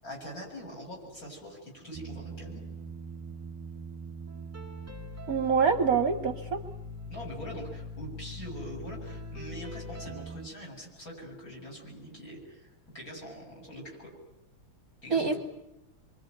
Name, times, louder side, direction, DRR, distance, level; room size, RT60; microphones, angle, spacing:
voice 1, 0.0-2.6 7.1-12.7 12.9-14.1 15.0-15.4, equal, 40° left, 1 dB, 7.9 m, -43 dB
sound 1, 1.9-10.5, equal, 15° right, 0.6 m, -42 dB
voice 2, 5.3-6.6 15.1-15.4, right 6 dB, 50° right, 8 dB, 1.4 m, -25 dB
26.0 x 24.0 x 9.3 m, 0.89 s
omnidirectional pair, 2.3 m